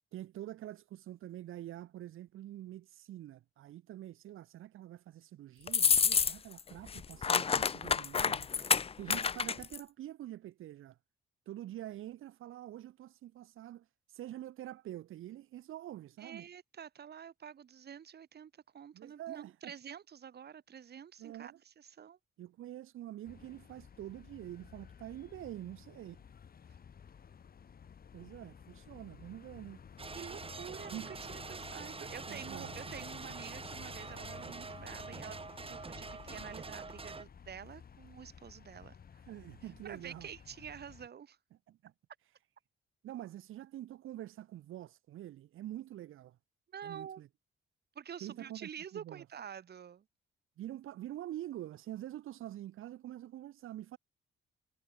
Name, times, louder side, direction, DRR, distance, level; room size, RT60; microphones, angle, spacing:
voice 1, 0.1-8.5 9.0-11.0 11.5-16.5 18.9-19.7 21.2-21.6 22.4-26.2 28.1-29.8 30.9-31.1 32.3-32.7 39.3-40.3 41.7-41.9 43.0-46.4 46.8-47.3 48.2-49.2 50.6-54.0, right 13 dB, 85° right, 4.0 m, -46 dB
sound 1, 5.7-6.6 6.9-9.8, left 6 dB, 30° left, 0.6 m, -28 dB
voice 2, 16.2-22.2 30.1-39.0 39.8-41.4 46.7-47.2 47.9-50.0, right 8 dB, 50° right, 4.2 m, -48 dB
sound 2, 23.3-41.1, left 7 dB, 45° left, 6.0 m, -53 dB
sound 3, 30.0-37.2, right 4 dB, 25° right, 3.3 m, -45 dB
cardioid pair, 110°, 21 cm